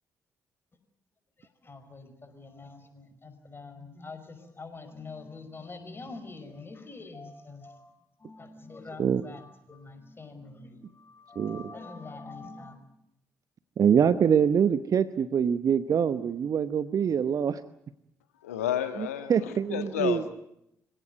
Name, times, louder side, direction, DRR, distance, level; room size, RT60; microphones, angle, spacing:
voice 1, 1.4-12.8, left 3 dB, 30° left, 8 dB, 5.5 m, -45 dB
voice 2, 13.8-17.6 19.3-20.2, right 7 dB, 50° right, 14 dB, 0.9 m, -24 dB
voice 3, 18.4-20.3, left 10 dB, 80° left, 10 dB, 1.6 m, -31 dB
26.5 x 17.0 x 9.4 m, 0.79 s
figure-of-eight pair, 40°, 8 cm